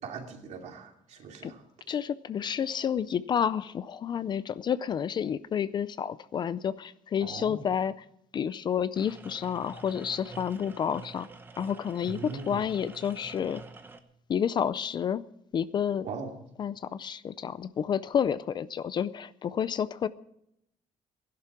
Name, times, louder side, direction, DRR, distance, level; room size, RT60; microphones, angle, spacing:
voice 1, 0.0-1.6 7.2-7.6 12.0-12.6 16.0-16.3, right 5 dB, 60° right, 3 dB, 2.7 m, -40 dB
voice 2, 1.9-8.0 8.3-11.3 11.6-13.6 14.3-15.2 15.5-16.1 16.6-20.1, left 8 dB, 35° left, 16 dB, 0.5 m, -30 dB
sound 1, 8.9-14.0, right 3 dB, 15° right, 0.9 m, -48 dB
17.0 x 11.5 x 6.0 m, 0.78 s
cardioid pair, 175°, 13 cm